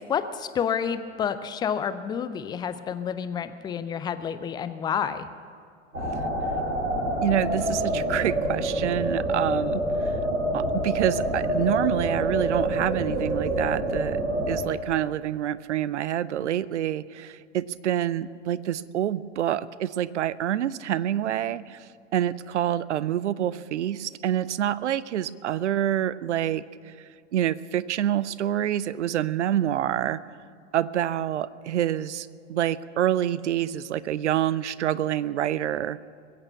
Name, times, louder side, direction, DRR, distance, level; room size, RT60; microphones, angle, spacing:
voice 1, 0.0-5.3, left 7 dB, 10° left, 12 dB, 0.4 m, -29 dB
sound 1, 5.9-14.6, right 1 dB, 85° right, 2.4 m, -27 dB
voice 2, 7.2-9.8 10.5-14.2 14.5-21.8 22.1-26.6 27.3-30.2 30.7-36.0, right 11 dB, 65° right, 18 dB, 0.6 m, -27 dB
22.0 x 8.8 x 7.0 m, 2.3 s
figure-of-eight pair, 90°, 38 cm